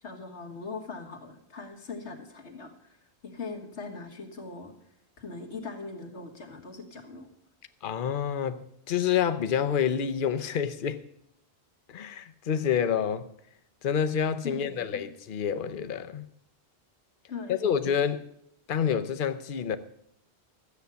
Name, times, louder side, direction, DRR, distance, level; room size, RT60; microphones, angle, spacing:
voice 1, 0.0-3.0 3.2-4.7 5.2-7.3 14.4-15.0 17.3-17.8, left 4 dB, 85° left, 2.0 m, -40 dB
voice 2, 7.8-8.6 8.9-11.0 11.9-13.3 13.8-16.2 17.5-18.3 18.7-19.8, left 8 dB, 55° left, 0.9 m, -28 dB
13.0 x 8.0 x 6.9 m
omnidirectional pair, 1.1 m